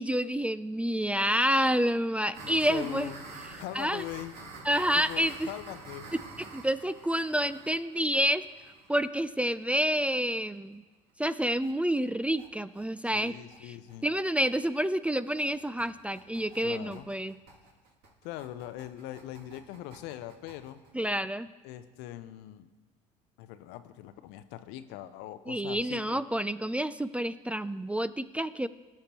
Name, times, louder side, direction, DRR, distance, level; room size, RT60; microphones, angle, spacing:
voice 1, 0.0-3.1 3.8-4.0 4.7-5.5 6.5-8.4 8.9-10.8 11.2-13.3 14.0-17.4 20.9-21.5 25.5-28.7, equal, 5° right, 14 dB, 0.3 m, -28 dB
sound 1, 2.3-10.0 10.3-10.4 10.7-10.8 11.1-11.2 11.5-11.7 12.0-21.1, right 3 dB, 60° right, 2.7 m, -48 dB
voice 2, 2.5-3.2 3.5-4.3 4.9-6.1 13.1-14.1 16.6-17.1 18.2-20.8 21.6-22.7 23.4-26.2, left 13 dB, 70° left, 12 dB, 0.7 m, -41 dB
17.0 x 6.6 x 3.0 m, 1.2 s
hypercardioid pair, 70°, 18 cm